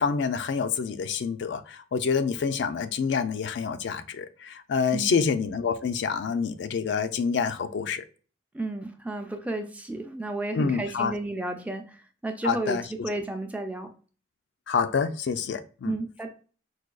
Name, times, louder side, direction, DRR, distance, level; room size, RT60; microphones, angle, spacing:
voice 1, 0.0-8.0 10.5-11.1 12.4-12.8 14.7-15.9, left 5 dB, 65° left, 9 dB, 0.3 m, -27 dB
voice 2, 4.9-5.2 8.5-13.9 15.8-16.3, right 2 dB, 10° right, 5 dB, 0.3 m, -32 dB
4.8 x 2.2 x 2.3 m, 0.38 s
head